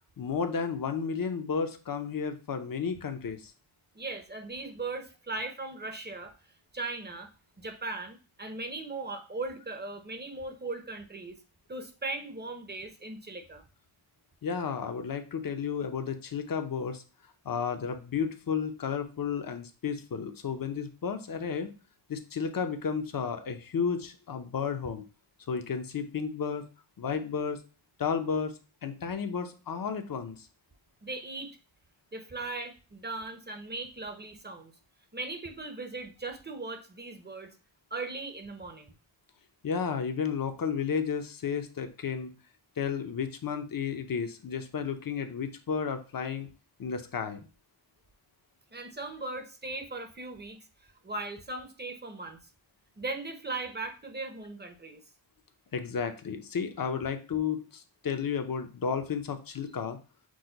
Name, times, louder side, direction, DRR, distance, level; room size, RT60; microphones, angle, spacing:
voice 1, 0.2-3.4 14.4-17.0 17.4-21.7 22.1-25.0 25.5-26.7 27.0-27.6 28.0-30.5 39.6-42.3 42.8-46.5 46.8-47.5 55.7-60.0, left 6 dB, 45° left, 7 dB, 0.6 m, -32 dB
voice 2, 3.9-6.3 6.7-7.3 7.6-11.4 11.7-13.6 31.0-31.6 32.1-34.7 35.1-37.5 37.9-38.9 48.7-52.4 53.0-55.0, right 3 dB, 20° right, 5 dB, 0.7 m, -38 dB
6.2 x 2.1 x 3.8 m, 0.34 s
wide cardioid pair, 115°, 49 cm